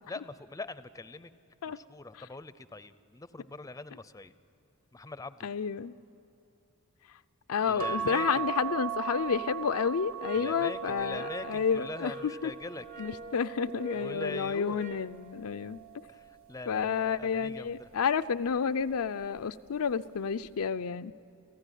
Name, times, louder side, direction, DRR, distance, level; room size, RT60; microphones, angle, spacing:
voice 1, 0.1-1.3 1.6-4.3 4.9-5.5 7.7-8.5 10.3-12.8 13.9-14.8 16.1-17.9, left 3 dB, 15° left, 14 dB, 0.5 m, -43 dB
voice 2, 5.4-6.0 7.5-12.5 13.0-15.8 16.7-21.1, left 6 dB, 70° left, 11 dB, 0.5 m, -30 dB
sound 1, 7.8-14.4 15.1-16.5 17.7-18.1 18.5-18.6, right 8 dB, 65° right, 1.6 m, -39 dB
sound 2, 10.2-15.1, equal, 35° right, 0.7 m, -43 dB
29.5 x 15.5 x 10.0 m, 2.7 s
head